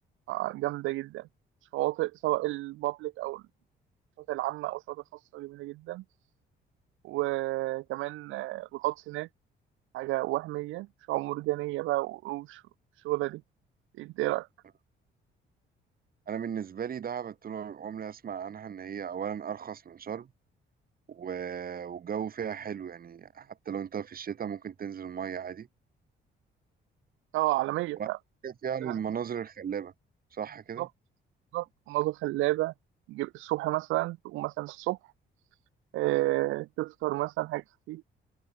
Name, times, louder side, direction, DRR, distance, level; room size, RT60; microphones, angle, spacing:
voice 1, 0.3-1.3 1.7-3.4 4.3-5.0 5.3-6.0 7.0-9.3 9.9-12.6 13.0-13.4 14.0-14.5 27.3-28.2 28.8-29.0 30.8-30.9 31.5-32.7 33.1-35.0 35.9-38.0, right 18 dB, 90° right, 0.5 m, -31 dB
voice 2, 16.3-20.3 21.1-25.7 28.0-28.1 28.4-29.9 30.3-30.9, right 8 dB, 45° right, 1.5 m, -36 dB
open air
cardioid pair, 90°, 20 cm